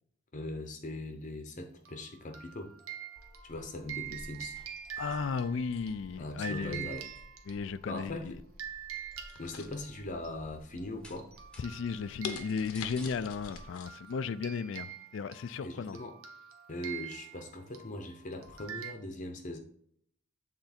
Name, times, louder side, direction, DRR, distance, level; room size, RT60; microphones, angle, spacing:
voice 1, 0.3-2.7 3.4-4.6 6.2-7.1 7.9-8.4 9.4-11.3 15.6-16.1 16.7-19.6, left 1 dB, 35° left, 0.7 m, -40 dB
sound 1, 1.8-8.0 8.6-10.3 10.8-10.9 11.2-18.9, right 10 dB, 75° right, 1.1 m, -46 dB
sound 2, 3.2-13.7, equal, 5° left, 0.9 m, -54 dB
voice 2, 5.0-7.0 7.5-8.3 11.6-16.0, left 5 dB, 60° left, 0.3 m, -35 dB
sound 3, 9.3-10.3 10.7-11.1 11.6-11.7 12.2-13.9 14.3-14.4, left 6 dB, 90° left, 0.8 m, -43 dB
8.1 x 3.8 x 4.2 m
head